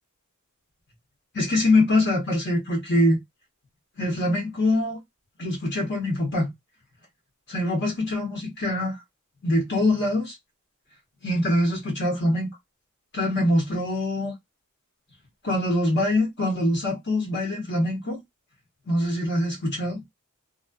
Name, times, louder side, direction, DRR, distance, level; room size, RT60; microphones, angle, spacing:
voice 1, 1.3-3.2 4.0-5.0 5.4-6.5 7.5-9.0 9.4-10.4 11.2-12.5 13.1-14.3 15.4-18.2 18.9-20.0, left 1 dB, 55° left, 1.1 m, -24 dB
2.5 x 2.3 x 2.2 m
head